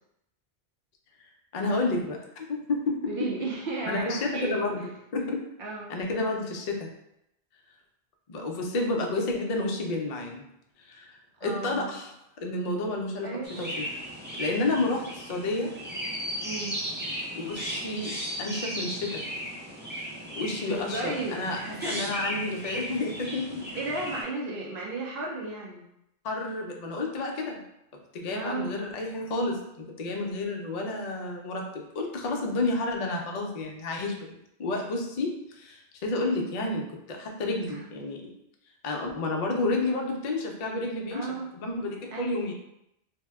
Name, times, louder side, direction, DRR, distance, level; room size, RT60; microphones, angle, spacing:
voice 1, 1.5-3.0 3.9-4.8 5.1-5.4 5.9-6.9 8.3-10.4 10.8-11.2 11.4-12.1 12.4-13.9 14.4-15.7 17.3-19.2 20.0-20.1 20.4-23.7 26.2-27.6 28.1-38.2 38.8-41.3 41.5-42.5, left 2 dB, 55° left, 1 dB, 0.5 m, -30 dB
voice 2, 3.1-4.8 5.6-6.0 11.4-12.0 13.2-13.5 16.4-16.8 20.7-22.0 23.8-25.9 28.3-28.8 37.7-37.8 41.1-41.5 42.1-42.5, right 3 dB, 65° right, -2 dB, 0.7 m, -34 dB
Chirp tweet, 13.4-24.2, equal, 10° right, 0.6 m, -36 dB
2.7 x 2.1 x 3.4 m, 0.81 s
omnidirectional pair, 1.1 m